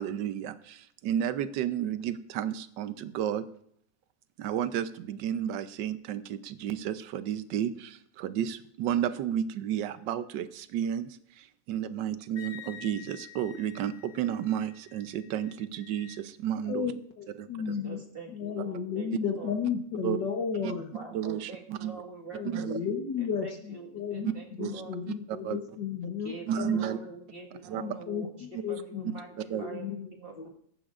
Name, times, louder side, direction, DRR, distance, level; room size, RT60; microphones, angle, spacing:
voice 1, 0.0-3.5 4.4-16.9 17.4-17.7 19.1-19.2 20.0-20.2 20.6-20.7 21.1-22.0 22.4-22.8 24.2-24.3 24.6-24.7 25.3-25.6 26.5-27.0 27.6-27.8 29.5-29.6, right 10 dB, 75° right, 12 dB, 1.4 m, -32 dB
Wind instrument woodwind instrument, 12.4-16.2, left 10 dB, 35° left, 1.3 m, -49 dB
voice 2, 16.6-20.9 22.3-24.3 24.6-26.8 27.8-29.1 29.5-30.1 30.4-30.5, left 6 dB, 70° left, 3 dB, 1.7 m, -34 dB
voice 3, 17.6-19.6 20.7-22.9 23.2-25.0 26.0-30.5, right 2 dB, 30° right, 2 dB, 1.8 m, -45 dB
17.5 x 14.5 x 2.5 m, 0.70 s
omnidirectional pair, 2.0 m